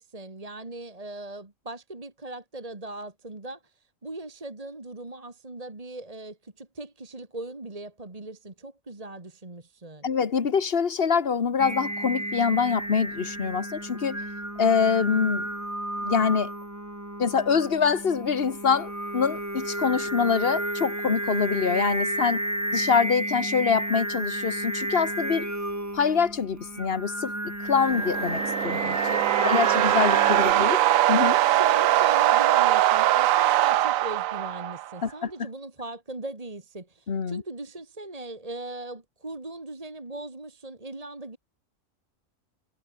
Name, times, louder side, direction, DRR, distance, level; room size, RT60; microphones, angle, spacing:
voice 1, 0.0-10.1 29.0-29.6 30.1-30.8 31.4-41.4, right 2 dB, 25° right, 2.4 m, -39 dB
voice 2, 10.0-14.2 14.6-15.5 16.0-16.5 17.2-22.4 22.7-25.5 25.9-27.3 27.7-29.0 29.4-30.8 31.1-31.4 35.0-35.3 37.1-37.4, left 6 dB, 45° left, 1.6 m, -25 dB
Singing, 11.6-30.5, right 1 dB, 10° right, 2.6 m, -32 dB
sound 1, 27.9-35.0, right 14 dB, 85° right, 1.0 m, -22 dB
omnidirectional pair, 1.4 m